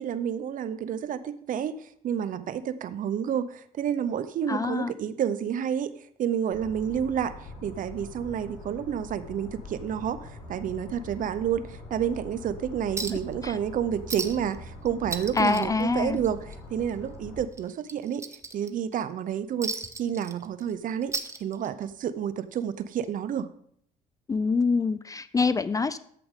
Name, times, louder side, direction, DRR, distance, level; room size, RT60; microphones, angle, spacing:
voice 1, 0.0-1.7 2.0-5.9 6.2-7.3 7.6-18.3 18.5-19.7 20.0-21.1 21.4-23.5, right 9 dB, 50° right, 14 dB, 0.7 m, -29 dB
voice 2, 4.5-4.9 13.4-13.6 15.4-16.2 24.3-26.0, left 4 dB, 20° left, 15 dB, 0.4 m, -25 dB
sound 1, 6.5-17.4, left 2 dB, 60° left, 4.9 m, -43 dB
Chink clink, 13.0-13.3 13.6-13.7 14.1-14.6 14.9-16.6 16.9-17.1 17.5-18.9 19.6-20.7 21.0-21.9 23.0-23.1, right 3 dB, 15° right, 0.8 m, -35 dB
13.5 x 6.8 x 3.7 m, 0.65 s
cardioid pair, 110°, 17 cm